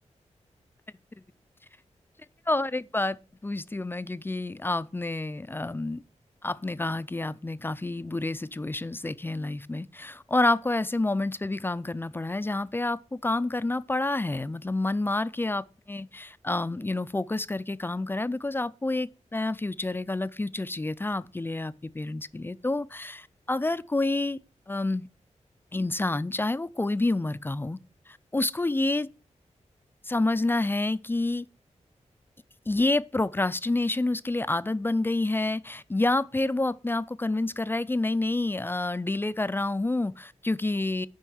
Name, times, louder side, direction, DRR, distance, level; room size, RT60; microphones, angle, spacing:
voice 1, 2.5-3.2 3.4-6.0 6.4-24.4 24.7-25.1 25.7-27.8 28.3-29.1 30.0-31.5 32.7-41.1, left 2 dB, 15° left, 0.4 m, -28 dB
9.0 x 5.6 x 7.8 m
wide cardioid pair, 130°, 12 cm